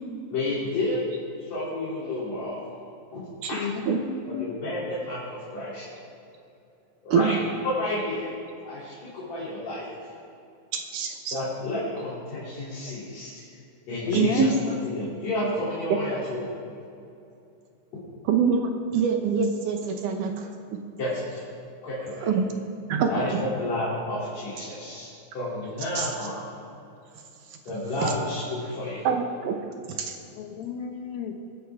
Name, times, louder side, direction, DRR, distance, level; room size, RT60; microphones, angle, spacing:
voice 1, 0.3-1.0 1.4-2.7 3.1-3.2 3.5-3.6 4.3-5.8 7.0-7.4 7.6-8.3 8.6-9.9 11.3-13.4 13.9-16.4 21.0-21.4 21.8-22.3 23.1-25.1 25.3-26.4 27.7-29.1, left 1 dB, 50° left, -10 dB, 4.0 m, -31 dB
voice 2, 3.5-4.5 14.1-14.8 30.3-31.4, left 6 dB, 80° left, 4 dB, 2.9 m, -31 dB
voice 3, 7.1-7.4 10.7-11.4 14.1-14.5 15.9-16.0 18.3-20.8 22.2-22.5 22.9-23.4 26.0-26.1 28.0-28.1 29.0-29.6 29.9-30.2, right 6 dB, 70° right, 4 dB, 2.2 m, -25 dB
23.5 x 9.8 x 3.5 m, 2.6 s
omnidirectional pair, 4.2 m